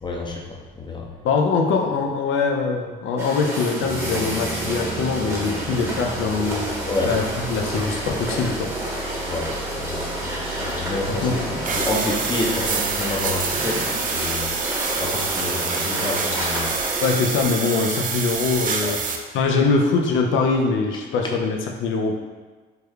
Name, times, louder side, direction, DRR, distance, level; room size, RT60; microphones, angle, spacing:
voice 1, 0.0-1.1 6.9-7.1 9.3-14.5 15.0-16.7 18.8-19.0, left 2 dB, 25° left, 0 dB, 0.6 m, -29 dB
voice 2, 1.2-6.7 7.0-8.7 11.1-11.6 17.0-19.0 19.3-22.1, left 4 dB, 75° left, 2 dB, 0.4 m, -23 dB
sound 1, 3.2-17.1, right 1 dB, 15° right, 0.9 m, -30 dB
sound 2, 3.8-15.4, right 3 dB, 80° right, 1.0 m, -36 dB
sound 3, 11.6-19.2, right 5 dB, 45° right, 0.4 m, -27 dB
3.3 x 2.2 x 3.4 m, 1.4 s
cardioid pair, 90°, 20 cm